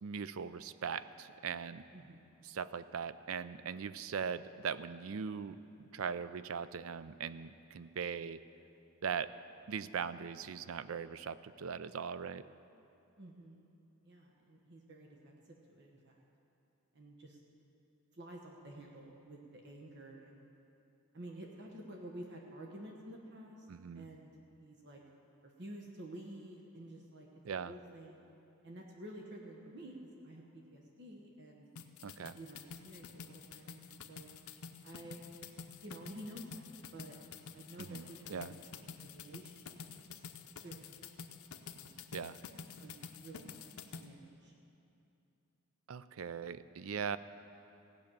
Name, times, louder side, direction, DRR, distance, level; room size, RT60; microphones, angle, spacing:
voice 1, 0.0-1.8 2.5-8.4 9.0-9.3 9.7-12.5 23.7-24.1 27.4-27.7 32.0-32.4 37.8-38.5 42.1-42.4 45.9-47.2, right 6 dB, 70° right, 14 dB, 0.4 m, -40 dB
voice 2, 1.9-2.3 13.2-13.7 14.0-16.2 16.9-17.4 18.1-20.4 21.1-23.6 23.9-24.3 24.6-25.0 25.4-28.3 28.6-29.9 30.2-31.7 32.3-34.3 34.8-35.3 35.8-36.7 36.9-37.2 37.5-40.1 40.6-40.9 41.7-41.9 42.8-43.6 43.9-44.5, right 1 dB, 55° right, 0 dB, 1.1 m, -51 dB
sound 1, 31.8-44.0, left 6 dB, 85° left, 0.7 m, -49 dB
16.0 x 6.3 x 8.7 m, 2.7 s
head